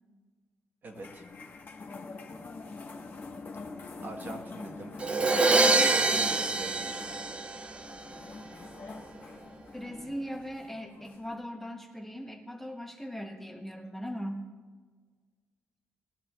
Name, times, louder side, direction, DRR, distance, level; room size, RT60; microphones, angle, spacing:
voice 1, 0.8-1.2 4.0-7.0, right 3 dB, 40° right, 3 dB, 1.2 m, -42 dB
sound 1, 0.9-11.3, left 3 dB, 35° left, 1.3 m, -45 dB
Crash cymbal, 5.0-7.9, right 3 dB, 20° right, 0.5 m, -25 dB
voice 2, 5.5-5.9 9.7-14.5, equal, 5° left, 1 dB, 0.9 m, -39 dB
20.0 x 12.0 x 2.4 m, 1.5 s
wide cardioid pair, 165°, 6 cm